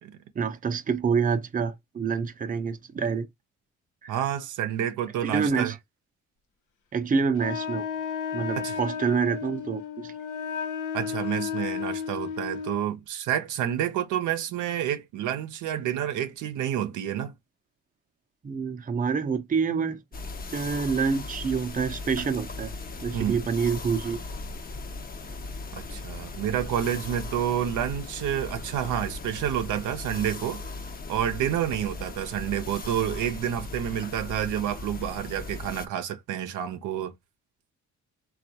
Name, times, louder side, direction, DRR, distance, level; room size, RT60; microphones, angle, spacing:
voice 1, 0.3-3.3 4.0-4.2 5.2-5.8 6.9-7.8 8.3-10.1 18.4-20.0 20.5-22.7 23.0-24.2, right 5 dB, 30° right, 0.6 m, -27 dB
voice 2, 4.1-5.7 8.5-8.8 10.9-17.3 23.1-23.4 25.7-30.6 31.1-37.1, right 10 dB, 80° right, 0.6 m, -29 dB
Wind instrument woodwind instrument, 7.4-12.9, left 7 dB, 90° left, 0.8 m, -33 dB
sound 1, 20.1-35.9, left 3 dB, 30° left, 0.6 m, -38 dB
3.4 x 2.3 x 2.7 m
cardioid pair, 90°, 30 cm